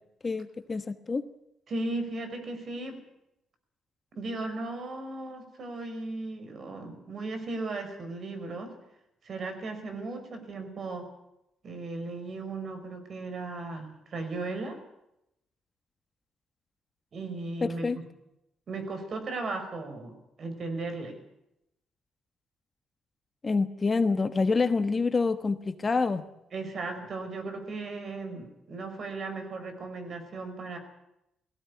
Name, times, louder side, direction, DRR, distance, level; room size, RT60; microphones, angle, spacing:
voice 1, 0.2-1.2 17.6-18.0 23.4-26.2, left 4 dB, 30° left, 10 dB, 1.3 m, -27 dB
voice 2, 1.7-3.0 4.1-8.7 9.2-11.1 11.6-14.8 17.1-18.0 18.7-21.2 26.5-30.8, right 3 dB, 50° right, 8 dB, 4.9 m, -36 dB
19.0 x 16.0 x 9.5 m, 0.85 s
cardioid pair, 90°, 0 cm